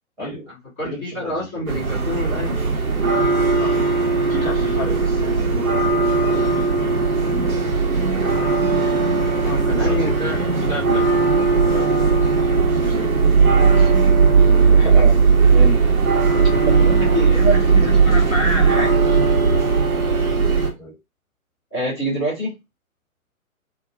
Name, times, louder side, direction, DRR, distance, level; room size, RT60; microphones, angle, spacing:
voice 1, 0.2-0.5 0.8-1.7 3.5-3.8 4.3-6.9 7.2-7.8 8.1-8.9 9.8-10.5 11.6-12.4 12.7-14.0 19.1-19.2 20.4-21.0, left 1 dB, 15° right, -8 dB, 1.1 m, -35 dB
voice 2, 0.8-2.6 9.4-11.2 14.7-15.2 15.5-15.8 16.7-19.0 21.7-22.6, equal, 5° left, -13 dB, 0.4 m, -26 dB
sound 1, 1.7-20.7, right 4 dB, 75° right, 1.0 m, -17 dB
2.3 x 2.3 x 2.3 m, 0.22 s
figure-of-eight pair, 130°, 43 cm